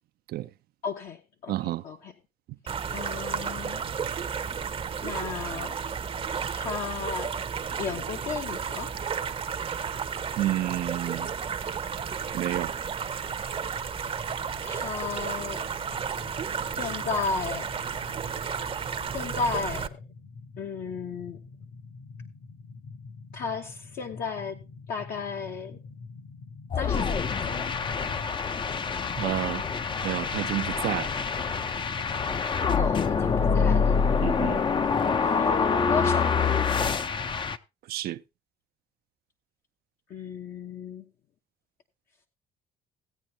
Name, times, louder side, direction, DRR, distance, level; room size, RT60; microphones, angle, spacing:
voice 1, 0.8-1.2 1.4-2.1 2.9-3.8 5.0-5.7 6.5-7.3 7.8-8.9 14.6-15.6 16.8-17.7 19.1-20.0 20.6-21.4 23.3-24.6 24.9-25.8 26.7-27.1 27.4-27.7 32.8-34.0 35.4-36.6 40.1-41.0, left 5 dB, 60° left, 1.1 m, -34 dB
voice 2, 1.5-1.8 4.0-4.2 10.4-11.3 12.3-12.7 29.2-29.6 30.0-31.1 34.2-34.6 37.9-38.2, right 14 dB, 65° right, 0.5 m, -30 dB
sound 1, 2.7-19.9, right 6 dB, 35° right, 0.7 m, -33 dB
sound 2, 13.6-28.3, left 4 dB, 75° left, 3.9 m, -46 dB
sound 3, 26.7-37.6, left 5 dB, 30° left, 0.6 m, -26 dB
16.0 x 8.9 x 2.7 m
cardioid pair, 110°, 17 cm